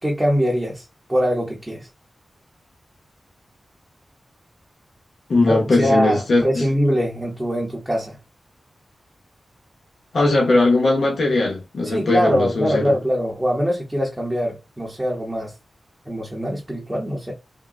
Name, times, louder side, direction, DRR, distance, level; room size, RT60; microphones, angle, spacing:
voice 1, 0.0-1.9 5.5-8.2 11.8-15.5 16.1-17.3, equal, 15° right, 0.7 m, -23 dB
voice 2, 5.3-6.7 10.1-12.9, left 2 dB, 65° left, 0.7 m, -19 dB
3.6 x 2.1 x 2.3 m
wide cardioid pair, 145°, 0 cm